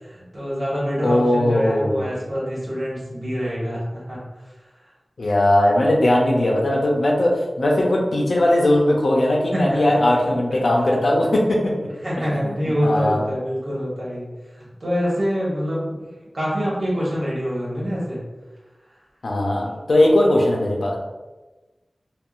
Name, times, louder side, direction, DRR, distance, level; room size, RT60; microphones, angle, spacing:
voice 1, 0.0-4.2 9.5-10.0 12.0-18.2, equal, 55° right, -7 dB, 1.3 m, -25 dB
voice 2, 1.0-2.0 5.2-11.9 12.2-13.2 19.2-21.0, left 1 dB, 80° left, -1 dB, 0.6 m, -19 dB
3.6 x 2.4 x 2.4 m, 1.2 s
wide cardioid pair, 80°, 0 cm